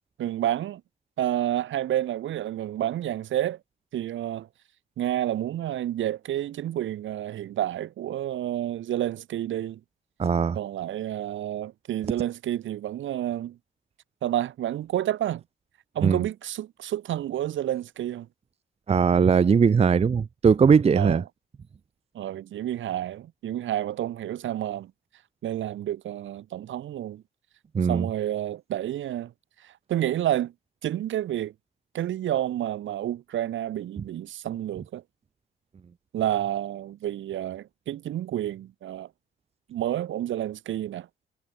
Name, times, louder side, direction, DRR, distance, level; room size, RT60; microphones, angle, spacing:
voice 1, 0.2-0.8 1.2-3.6 3.9-4.5 5.0-9.8 10.5-13.6 14.2-15.4 15.9-18.3 20.9-21.2 22.1-24.9 25.4-27.2 27.9-29.3 29.6-30.5 30.8-31.5 31.9-35.0 36.1-39.1 39.7-41.1, right 12 dB, 75° right, 3.1 m, -29 dB
voice 2, 10.2-10.6 16.0-16.2 18.9-21.2 27.7-28.1, right 6 dB, 30° right, 0.7 m, -20 dB
cardioid pair, 90°, 20 cm